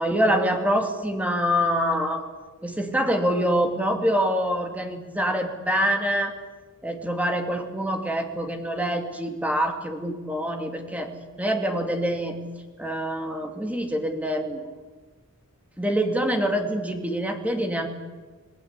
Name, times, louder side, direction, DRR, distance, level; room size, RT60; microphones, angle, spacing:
voice 1, 0.0-2.3 2.6-6.3 6.8-11.1 11.4-12.3 12.8-14.6 15.8-17.9, equal, 5° right, 5 dB, 2.5 m, -25 dB
26.5 x 19.0 x 8.3 m, 1.3 s
head